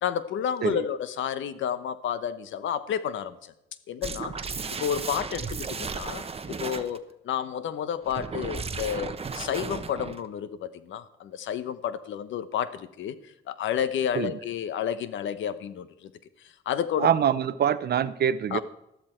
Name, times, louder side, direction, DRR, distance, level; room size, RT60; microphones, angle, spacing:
voice 1, 0.0-3.5 3.9-4.5 4.8-16.1 16.7-17.1 18.5-18.6, left 9 dB, 75° left, 13 dB, 1.0 m, -31 dB
sound 1, 4.0-7.0 8.0-10.3, right 5 dB, 30° right, 1.0 m, -35 dB
voice 2, 17.0-18.6, right 9 dB, 55° right, 15 dB, 0.7 m, -24 dB
13.5 x 12.5 x 4.4 m, 0.84 s
cardioid pair, 90°, 20 cm